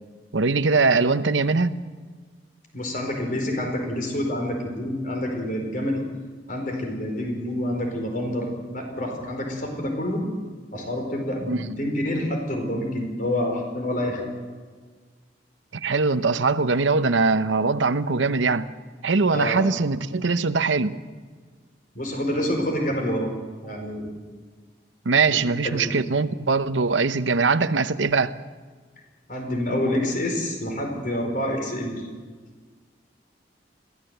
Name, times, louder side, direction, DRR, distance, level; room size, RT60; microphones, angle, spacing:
voice 1, 0.3-1.7 11.5-11.6 15.7-18.6 19.0-20.9 25.1-28.3, right 4 dB, 85° right, 12 dB, 0.8 m, -22 dB
voice 2, 2.7-6.0 6.5-10.2 10.7-14.2 19.3-19.6 21.9-23.3 23.6-24.2 25.3-25.4 25.6-25.9 29.3-32.1, left 1 dB, 45° left, 3 dB, 4.5 m, -27 dB
22.0 x 16.0 x 8.0 m, 1.5 s
head